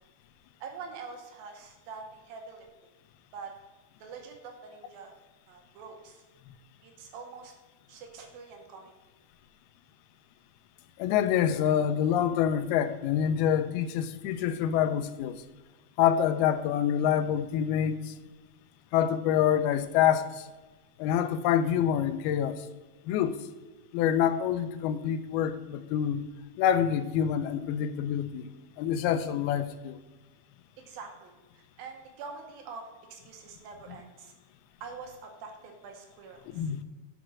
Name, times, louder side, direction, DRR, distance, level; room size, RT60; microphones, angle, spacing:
voice 1, 0.6-2.9 3.3-3.6 4.0-5.1 5.5-6.2 6.8-7.5 7.9-8.9 30.9-34.3 34.8-36.7, right 5 dB, 75° right, 2.6 m, -45 dB
voice 2, 11.0-15.4 16.0-18.1 18.9-20.5 21.0-22.7 23.1-23.4 23.9-26.3 26.6-28.5 28.8-30.0 36.5-36.8, left 9 dB, 80° left, 2.4 m, -26 dB
8.2 x 5.2 x 6.1 m
omnidirectional pair, 4.6 m